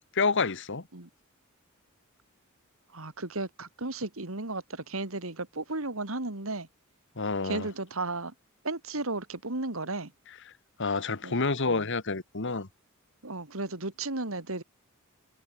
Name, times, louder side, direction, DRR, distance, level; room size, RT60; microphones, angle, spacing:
voice 1, 0.1-0.8 7.2-7.7 10.8-12.7, left 4 dB, 60° left, 1.7 m, -28 dB
voice 2, 2.9-6.7 7.4-8.3 8.6-10.1 11.2-11.4 11.7-11.9 13.2-14.6, right 2 dB, 70° right, 2.7 m, -34 dB
head